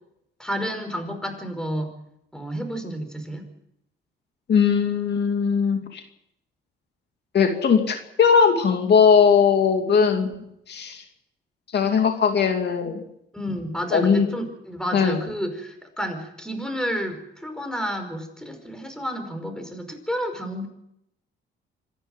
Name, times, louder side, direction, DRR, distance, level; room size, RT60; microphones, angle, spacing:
voice 1, 0.4-1.9 2.3-3.5 13.3-20.7, equal, 5° left, 6 dB, 5.2 m, -30 dB
voice 2, 4.5-6.0 7.3-10.3 10.7-11.0 11.7-13.0 13.9-14.3 14.9-15.2, left 6 dB, 60° left, 4 dB, 2.6 m, -19 dB
26.0 x 11.0 x 9.2 m, 0.79 s
cardioid pair, 90°, 20 cm